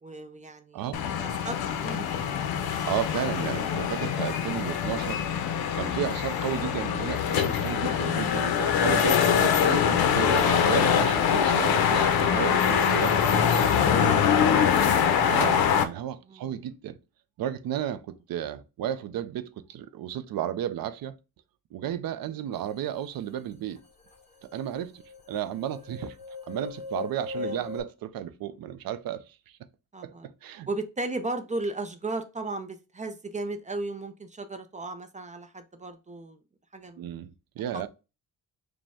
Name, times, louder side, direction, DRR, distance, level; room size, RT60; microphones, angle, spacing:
voice 1, 0.0-2.1 13.8-15.1 16.3-16.5 27.3-27.6 29.9-30.3 30.7-36.4 36.7-37.0, right 2 dB, 20° right, 0.4 m, -36 dB
voice 2, 0.7-1.0 2.9-5.2 5.8-13.6 15.3-17.0 17.4-21.2 21.7-23.8 24.5-25.0 25.3-26.2 26.5-29.6 30.0-30.7 37.0-37.9, right 10 dB, 70° right, 0.5 m, -33 dB
sound 1, 0.9-15.8, left 8 dB, 80° left, 0.7 m, -24 dB
sound 2, 23.8-23.9 24.1-27.8, left 5 dB, 15° left, 1.3 m, -39 dB
5.1 x 2.1 x 3.5 m
cardioid pair, 130°, 36 cm